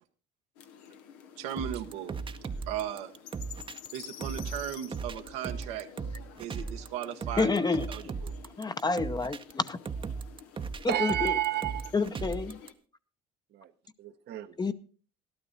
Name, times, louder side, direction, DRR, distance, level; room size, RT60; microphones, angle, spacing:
sound 1, 0.6-12.7, left 8 dB, 85° left, 1.0 m, -50 dB
voice 1, 1.4-2.2 2.7-3.1 3.9-5.9 6.4-8.3, right 10 dB, 85° right, 1.1 m, -37 dB
sound 2, 1.6-12.7, right 5 dB, 25° right, 0.7 m, -38 dB
voice 2, 7.4-7.9 8.6-9.8 10.8-11.3 11.9-12.6 14.6-14.7, left 4 dB, 20° left, 0.8 m, -28 dB
voice 3, 10.9-11.9 13.5-13.7 14.0-14.6, right 13 dB, 60° right, 0.9 m, -31 dB
12.5 x 12.0 x 4.0 m
supercardioid pair, 70°, 19 cm